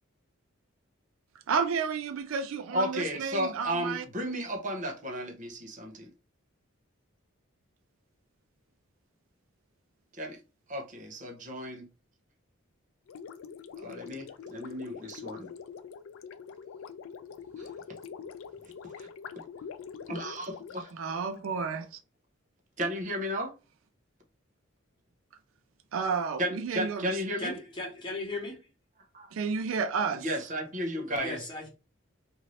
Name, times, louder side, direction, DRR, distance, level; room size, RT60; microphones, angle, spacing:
voice 1, 1.5-4.0 20.9-22.0 25.9-27.2 29.3-30.2, right 5 dB, 85° right, 0.4 m, -31 dB
voice 2, 2.7-6.1 10.1-10.4 10.7-11.9 13.8-15.5 17.6-17.7 19.0-19.1 20.1-20.9 22.8-23.5 26.4-27.5 29.1-29.3 30.1-31.4, equal, 40° right, 0.7 m, -34 dB
Gurgling, 13.1-21.5, left 6 dB, 80° left, 0.3 m, -44 dB
voice 3, 27.4-28.6 31.1-31.7, left 2 dB, 25° left, 1.0 m, -37 dB
2.6 x 2.5 x 3.1 m
head